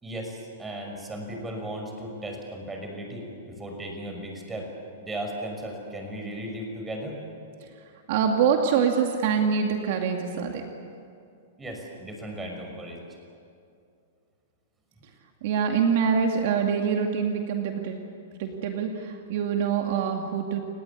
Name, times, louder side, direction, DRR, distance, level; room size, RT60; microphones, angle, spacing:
voice 1, 0.0-4.7 5.0-7.2 11.6-13.0, right 1 dB, 10° right, 2 dB, 6.0 m, -36 dB
voice 2, 8.1-10.6 15.4-18.0 18.4-20.6, right 6 dB, 60° right, 3 dB, 2.3 m, -25 dB
30.0 x 18.5 x 8.6 m, 2.5 s
hypercardioid pair, 135°, 0 cm